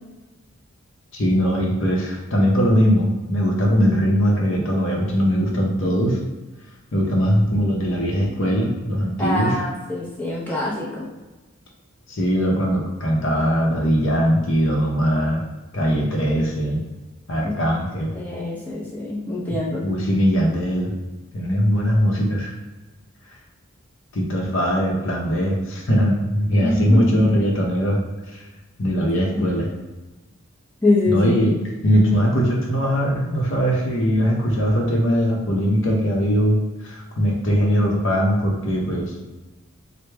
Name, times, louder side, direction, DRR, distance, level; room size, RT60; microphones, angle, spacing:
voice 1, 1.1-6.2 6.9-9.6 12.1-15.4 15.7-16.8 17.3-18.1 19.8-20.9 21.3-22.5 24.1-28.0 28.3-28.4 28.8-29.7 31.1-31.5 31.8-36.6 36.8-39.1, equal, 65° left, -1 dB, 0.7 m, -20 dB
voice 2, 9.2-11.1 17.4-17.5 18.1-19.8 26.6-27.2 29.3-29.5 30.8-31.4, left 2 dB, 10° left, -7 dB, 0.7 m, -24 dB
3.2 x 2.1 x 3.4 m, 1.2 s
head